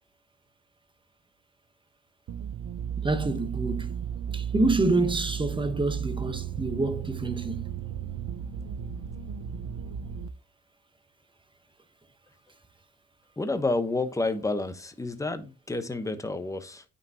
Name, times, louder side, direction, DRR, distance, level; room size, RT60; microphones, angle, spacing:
sound 1, 2.3-10.3, right 8 dB, 60° right, 0.8 m, -34 dB
voice 1, 3.0-4.0 4.3-7.7, right 2 dB, 15° right, 1.1 m, -27 dB
voice 2, 13.4-16.8, left 2 dB, 10° left, 1.0 m, -30 dB
8.9 x 5.6 x 2.8 m
cardioid pair, 90°, 30 cm